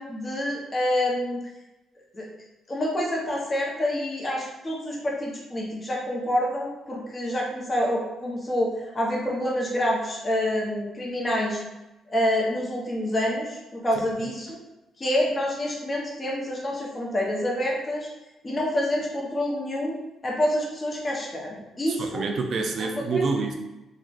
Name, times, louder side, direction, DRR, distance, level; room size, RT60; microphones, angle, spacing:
voice 1, 0.0-1.4 2.1-2.2 2.7-11.6 12.1-14.6 15.0-18.1 18.4-20.0 20.2-22.2 22.8-23.2, left 1 dB, 25° left, -2 dB, 0.8 m, -27 dB
voice 2, 21.9-23.5, right 4 dB, 55° right, 3 dB, 0.4 m, -27 dB
3.8 x 2.3 x 2.4 m, 0.99 s
cardioid pair, 90°, 0 cm